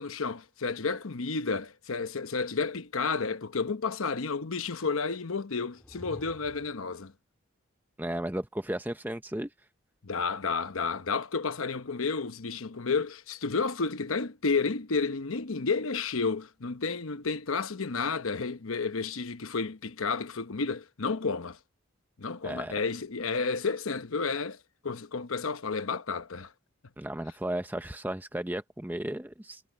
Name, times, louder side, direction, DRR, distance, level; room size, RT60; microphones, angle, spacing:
voice 1, 0.0-7.1 10.0-21.6 22.2-26.5, left 4 dB, 85° left, 1.0 m, -31 dB
sound 1, 5.7-6.9, equal, 10° left, 3.1 m, -49 dB
voice 2, 8.0-9.5 22.4-22.7 27.0-29.6, right 1 dB, 10° right, 0.6 m, -34 dB
head